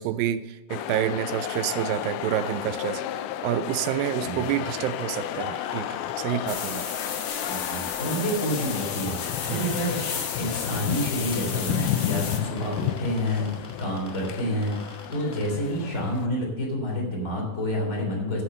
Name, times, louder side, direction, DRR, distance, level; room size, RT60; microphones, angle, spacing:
voice 1, 0.0-3.0 3.4-6.9 9.5-9.7, right 11 dB, 80° right, 11 dB, 2.2 m, -28 dB
sound 1, 0.7-16.3, left 12 dB, 90° left, 2.5 m, -32 dB
voice 2, 4.2-4.5 7.4-10.1 10.4-18.4, equal, 20° left, -1 dB, 3.3 m, -29 dB
sound 2, 4.5-9.0 9.4-10.1 10.4-15.5, right 1 dB, 5° right, 2.3 m, -46 dB
sound 3, 6.5-12.4, left 6 dB, 65° left, 1.4 m, -34 dB
15.0 x 5.6 x 6.6 m, 1.2 s
omnidirectional pair, 4.2 m